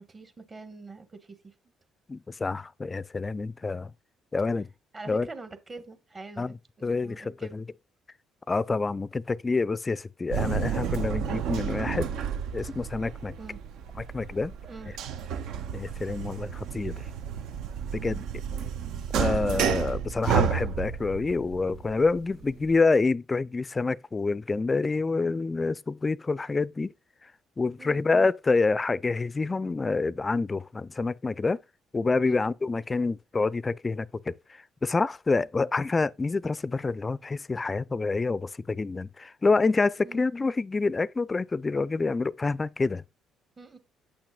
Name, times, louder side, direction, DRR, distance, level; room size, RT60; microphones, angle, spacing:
voice 1, 0.0-1.5 4.9-7.6 13.4-13.6 14.7-14.9 18.0-18.2 27.8-28.1 32.2-32.5 35.4-35.5 40.0-40.3 43.6-43.8, right 3 dB, 30° right, 1.3 m, -45 dB
voice 2, 2.1-3.9 4.3-4.7 5.1-5.3 6.4-6.5 6.8-7.6 8.5-12.1 12.5-13.4 14.1-14.5 15.7-16.9 17.9-18.2 19.1-26.9 27.6-31.6 31.9-34.4 34.8-43.0, left 3 dB, 30° left, 0.3 m, -27 dB
sound 1, 10.3-22.7, right 7 dB, 75° right, 0.6 m, -31 dB
8.3 x 6.0 x 2.3 m
supercardioid pair, 60°, 0 cm